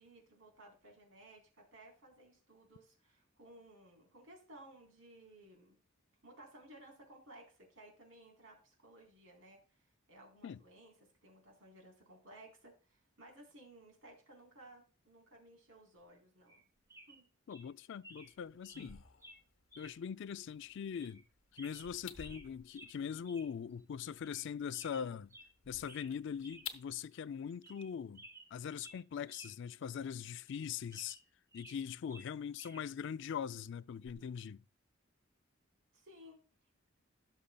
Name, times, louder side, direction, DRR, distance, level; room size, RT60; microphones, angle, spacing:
voice 1, 0.0-5.8 6.2-9.6 10.1-10.9 11.2-16.6 17.1-17.3 35.9-36.4, right 1 dB, 85° right, 3.9 m, -58 dB
sound 1, 16.5-16.6 16.9-17.2 17.5-17.7 18.0-18.3 18.6-18.9 19.2-19.4 19.7-20.0 20.3-20.4 21.0-21.2 21.5-22.5 22.7-22.9 23.2-23.5 23.8-23.9 24.2-24.5 24.7-25.5 25.8-26.1 26.4-26.7 27.0-27.1 27.5-27.9 28.1-29.5 29.8-29.9 30.5-31.8 32.1-32.8 34.0-34.3, right 1 dB, 15° right, 2.0 m, -56 dB
voice 2, 17.5-19.0 19.8-21.2 21.5-25.3 25.7-28.2 28.5-31.2 31.5-34.6, left 7 dB, 65° left, 0.3 m, -42 dB
sound 2, 18.1-26.9, left 8 dB, 90° left, 1.0 m, -54 dB
16.5 x 6.5 x 2.2 m
head